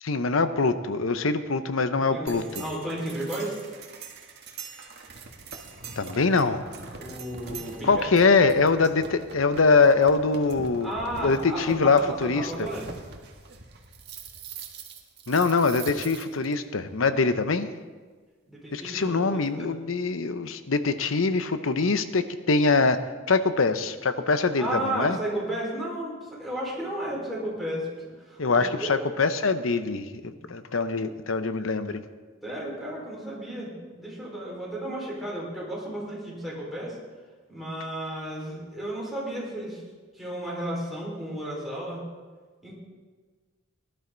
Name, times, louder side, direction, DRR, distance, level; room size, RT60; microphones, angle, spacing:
voice 1, 0.0-2.6 6.0-6.7 7.8-10.9 11.2-12.5 15.3-17.7 18.7-23.0 23.3-25.2 28.4-32.0, left 4 dB, 75° left, 11 dB, 0.8 m, -23 dB
voice 2, 2.1-3.5 7.0-8.1 10.8-12.8 18.5-19.7 24.6-29.1 30.2-30.4 31.0-31.1 32.4-37.0 37.5-39.8 40.2-42.0 42.6-42.7, right 1 dB, ahead, -6 dB, 4.6 m, -33 dB
sound 1, 2.3-16.5, right 4 dB, 55° right, 1.6 m, -43 dB
18.5 x 11.5 x 3.9 m, 1.4 s
head